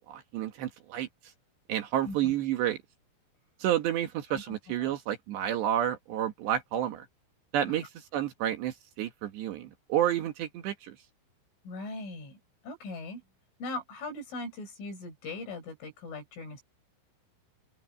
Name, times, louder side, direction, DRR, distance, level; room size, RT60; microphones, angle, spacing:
voice 1, 0.1-1.1 1.7-2.8 3.6-7.1 7.5-7.9 8.1-11.0, right 11 dB, 65° right, 3.3 m, -30 dB
voice 2, 4.3-4.9 7.7-7.9 11.6-12.4 12.6-13.2 13.6-16.6, left 2 dB, 70° left, 9.8 m, -40 dB
open air
omnidirectional pair, 5.9 m